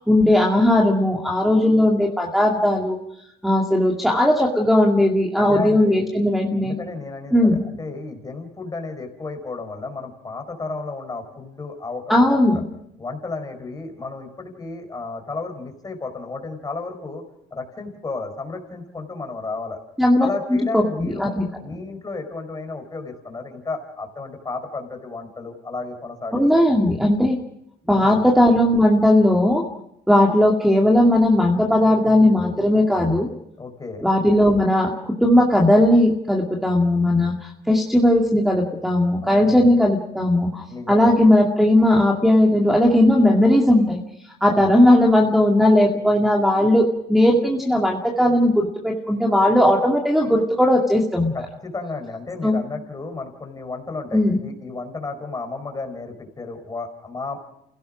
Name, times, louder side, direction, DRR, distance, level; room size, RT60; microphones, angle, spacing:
voice 1, 0.0-3.0 3.4-6.8 7.3-7.7 12.1-12.6 20.0-20.3 20.7-20.8 21.2-21.5 26.3-27.4 27.9-29.6 30.1-33.3 34.0-44.0 44.4-51.3 52.4-52.6 54.1-54.4, left 1 dB, ahead, 0 dB, 2.3 m, -17 dB
voice 2, 5.3-6.1 6.6-12.6 13.0-17.2 17.5-19.8 20.2-21.3 21.6-26.4 27.9-28.2 33.6-34.1 39.2-39.7 40.7-41.1 44.4-44.7 51.3-57.4, left 3 dB, 20° left, 5 dB, 4.5 m, -33 dB
28.5 x 17.0 x 6.3 m, 0.77 s
cardioid pair, 110°, 17 cm